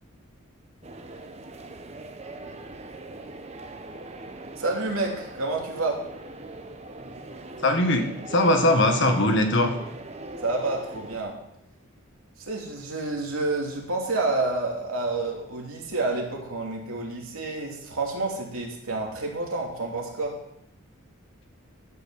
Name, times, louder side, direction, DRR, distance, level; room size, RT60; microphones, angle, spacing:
sound 1, 0.8-11.2, right 2 dB, 30° right, 0.9 m, -41 dB
voice 1, 4.6-6.0 10.4-11.4 12.4-20.4, right 2 dB, 80° right, 0 dB, 2.8 m, -29 dB
voice 2, 7.6-9.8, left 1 dB, 55° left, 5 dB, 1.6 m, -21 dB
13.0 x 5.7 x 7.3 m, 0.78 s
head